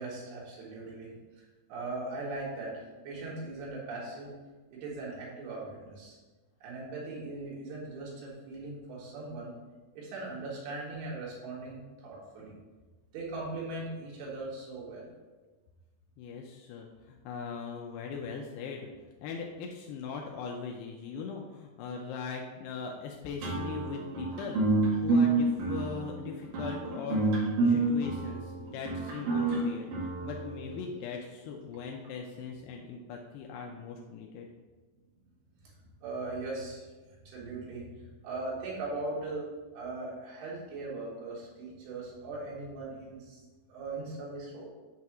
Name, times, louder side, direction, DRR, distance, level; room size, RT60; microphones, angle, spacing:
voice 1, 0.0-4.3 4.7-6.2 6.6-9.5 10.0-12.6 13.1-15.1 35.6-35.8 36.0-36.9 37.3-39.5 39.7-43.4 43.7-44.7, right 2 dB, 80° right, -5 dB, 3.7 m, -39 dB
voice 2, 16.2-18.9 19.2-34.5, left 5 dB, 90° left, 0 dB, 2.7 m, -40 dB
sound 1, 23.4-30.8, right 3 dB, 60° right, 2.3 m, -28 dB
8.1 x 2.8 x 5.9 m, 1.3 s
omnidirectional pair, 4.5 m